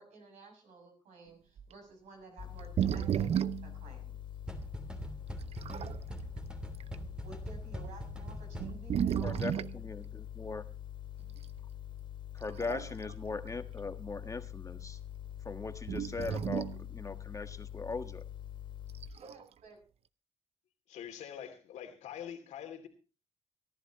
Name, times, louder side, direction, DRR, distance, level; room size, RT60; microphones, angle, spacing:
voice 1, 0.0-3.3 3.6-4.2 7.0-9.5 19.1-19.8, right 3 dB, 85° right, 4 dB, 6.6 m, -53 dB
sound 1, 1.6-1.7 2.6-3.7 4.6-4.7 5.4-6.0 6.7-7.0 7.8-7.9 8.5-9.8 11.4-11.6 12.4-13.1 13.5-13.6 15.9-16.8 18.9-19.4, right 9 dB, 60° right, 0.6 m, -33 dB
sound 2, 2.4-19.1, left 11 dB, 45° left, 3.0 m, -45 dB
sound 3, 4.5-9.1, right 2 dB, 5° right, 3.0 m, -44 dB
voice 2, 9.2-10.6 12.3-15.0 15.5-18.2, left 4 dB, 25° left, 8 dB, 1.6 m, -40 dB
voice 3, 20.9-22.9, left 9 dB, 90° left, 5 dB, 2.9 m, -44 dB
24.0 x 11.5 x 3.1 m, 0.33 s
cardioid pair, 70°, 12 cm